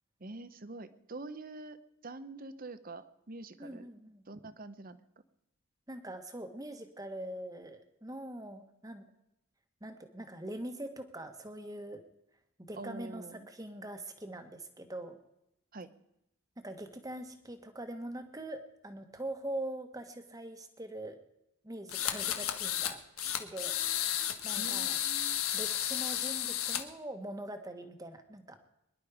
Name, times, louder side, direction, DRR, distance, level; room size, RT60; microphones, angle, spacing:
voice 1, 0.2-3.9 4.3-5.0 12.8-13.5 15.7-15.9 24.6-25.4, right 2 dB, 40° right, 12 dB, 0.9 m, -45 dB
voice 2, 3.6-4.2 5.9-9.0 9.8-12.0 12.6-15.2 16.6-21.2 21.6-23.0 23.4-25.0 25.5-28.6, right 1 dB, 15° right, 6 dB, 1.4 m, -43 dB
sound 1, 21.9-22.9 23.2-26.8, left 11 dB, 85° left, 1.4 m, -33 dB
23.5 x 11.0 x 5.0 m, 0.85 s
head